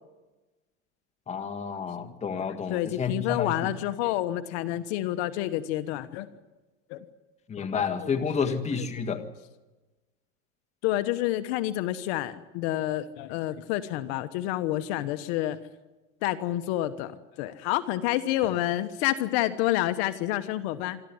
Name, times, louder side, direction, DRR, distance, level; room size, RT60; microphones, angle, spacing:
voice 1, 1.3-3.7 7.5-9.2, left 6 dB, 15° left, 8 dB, 1.6 m, -30 dB
voice 2, 2.4-6.3 6.9-7.0 7.6-8.1 8.4-8.5 10.8-15.6 16.2-21.0, left 14 dB, 55° left, 11 dB, 1.3 m, -29 dB
27.0 x 12.0 x 9.5 m, 1.1 s
supercardioid pair, 140°, 38 cm